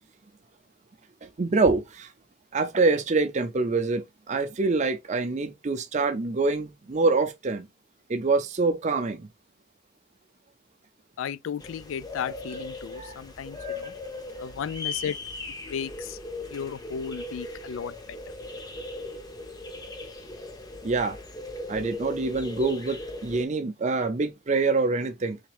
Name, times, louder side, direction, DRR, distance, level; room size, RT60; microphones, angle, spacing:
voice 1, 1.2-2.1 2.5-7.7 8.1-9.3 13.0-13.2 13.6-13.8 20.8-21.2 21.7-25.4, right 3 dB, 35° right, 0.5 m, -25 dB
voice 2, 11.2-13.9 14.4-15.2 15.7-16.2 16.5-18.2, left 7 dB, 70° left, 0.3 m, -34 dB
sound 1, 11.6-23.4, left 2 dB, 20° left, 0.6 m, -38 dB
3.6 x 3.3 x 3.3 m
head